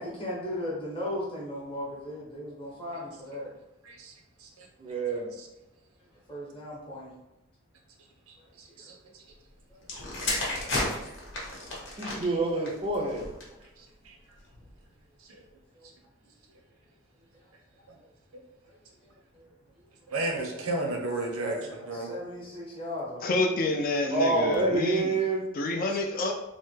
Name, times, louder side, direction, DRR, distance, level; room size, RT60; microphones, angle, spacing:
voice 1, 0.0-3.5 6.3-7.1 8.4-8.5 8.8-8.9 9.9-10.1 11.5-12.0 15.7-15.9 18.6-18.8 19.1-19.9 20.5-20.7 21.5-23.4, left 1 dB, 25° left, -5 dB, 0.8 m, -38 dB
voice 2, 3.8-4.1 4.4-4.7 5.1-5.5 8.3-9.2 10.4-10.6 13.8-14.2 15.2-15.4 17.9-18.0 20.1-22.2, right 2 dB, 80° right, 2 dB, 0.6 m, -34 dB
voice 3, 4.8-5.3 12.0-13.3 24.1-25.4, right 2 dB, 25° right, 0 dB, 0.4 m, -27 dB
sound 1, 9.8-13.7 14.4-14.7, left 2 dB, 55° left, 0.9 m, -33 dB
voice 4, 23.2-25.2 25.5-26.3, left 2 dB, 40° left, 3 dB, 0.3 m, -28 dB
3.2 x 2.1 x 3.1 m, 0.97 s
head